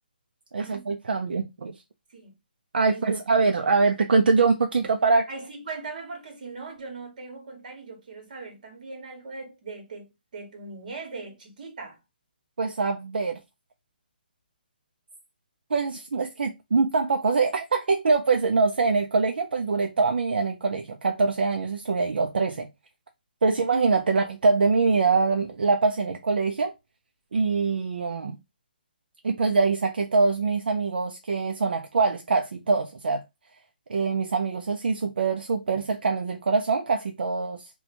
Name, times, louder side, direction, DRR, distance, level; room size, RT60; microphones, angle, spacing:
voice 1, 0.5-1.7 2.7-5.3 12.6-13.4 15.7-22.7 23.4-26.7 27.3-28.4 29.2-33.2 33.9-37.7, right 4 dB, 75° right, 0.5 m, -24 dB
voice 2, 2.9-3.2 5.3-12.0, right 3 dB, 50° right, 1.3 m, -40 dB
2.8 x 2.3 x 4.2 m
hypercardioid pair, 160°, 5 cm